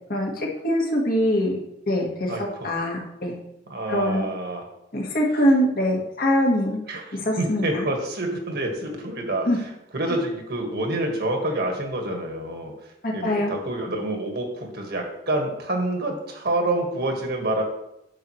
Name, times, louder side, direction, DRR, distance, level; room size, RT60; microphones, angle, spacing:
voice 1, 0.1-1.6 1.9-2.3 2.6-3.3 3.9-4.3 4.9-6.8 7.1-7.9 9.5-9.6 13.0-13.5, equal, 50° left, 0 dB, 1.7 m, -23 dB
voice 2, 2.3-2.7 3.7-4.6 6.9-12.7 13.1-17.6, right 1 dB, 60° right, 2 dB, 1.7 m, -27 dB
9.9 x 6.9 x 3.2 m, 0.87 s
head